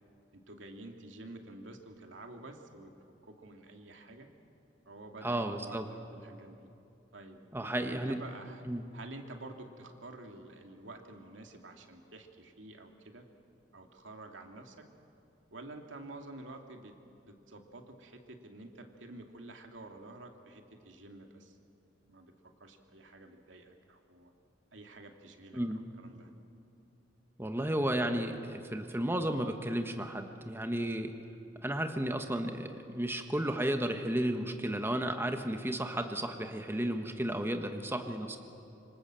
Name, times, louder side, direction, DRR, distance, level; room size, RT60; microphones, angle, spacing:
voice 1, 0.5-2.9 3.2-4.3 4.9-6.7 7.1-8.6 8.9-13.2 13.7-14.8 15.5-16.9 17.2-21.6 22.1-24.3 24.7-26.3, right 2 dB, 85° right, 4 dB, 2.5 m, -49 dB
voice 2, 5.2-5.8 7.5-8.2 8.7-8.8 25.5-25.8 27.4-31.1 31.6-38.4, right 1 dB, 10° right, 5 dB, 1.3 m, -33 dB
26.5 x 25.5 x 7.7 m, 2.7 s
head